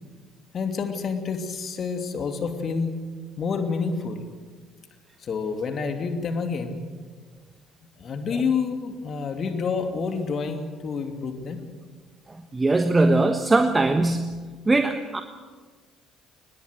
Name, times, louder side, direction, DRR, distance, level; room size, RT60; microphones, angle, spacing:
voice 1, 0.5-3.0 3.4-4.3 5.2-6.9 8.0-11.6, left 5 dB, 40° left, 6 dB, 2.8 m, -28 dB
voice 2, 12.5-14.3 14.7-15.2, right 2 dB, 20° right, 8 dB, 1.3 m, -20 dB
22.5 x 20.0 x 7.9 m, 1.5 s
figure-of-eight pair, 50°, 0 cm